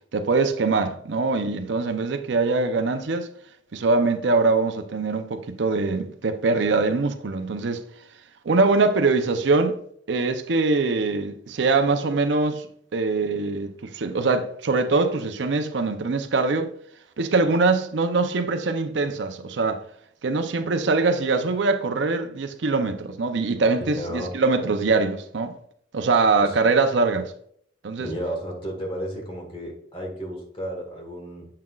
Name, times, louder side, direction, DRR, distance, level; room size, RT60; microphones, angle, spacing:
voice 1, 0.1-3.3 3.7-7.8 8.4-9.8 10.1-12.7 12.9-16.7 17.2-19.8 20.2-25.5 25.9-27.3 27.8-28.1, right 3 dB, 75° right, 0.6 m, -23 dB
voice 2, 23.8-24.3 26.4-26.6 28.0-31.5, equal, 30° left, 1.5 m, -33 dB
7.5 x 5.7 x 2.3 m
head